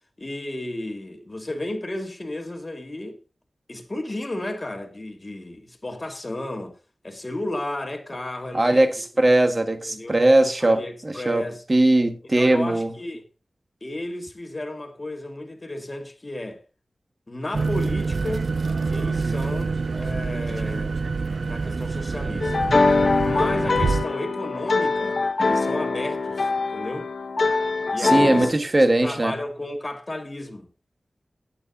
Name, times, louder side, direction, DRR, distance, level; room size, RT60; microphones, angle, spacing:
voice 1, 0.2-3.2 3.7-6.8 7.0-8.9 9.1-9.2 9.9-10.2 10.6-11.6 12.3-13.2 13.8-16.6 17.3-18.5 18.9-21.0 21.4-22.6 23.2-27.1 27.9-28.5 29.0-30.7, left 1 dB, 30° left, 2.1 m, -33 dB
voice 2, 8.5-12.9 28.0-29.3, right 1 dB, 30° right, 1.5 m, -20 dB
sound 1, 17.5-24.1, right 4 dB, 65° right, 0.5 m, -26 dB
sound 2, 22.4-28.5, left 3 dB, 65° left, 1.6 m, -23 dB
20.5 x 8.8 x 2.8 m
wide cardioid pair, 70°, 0 cm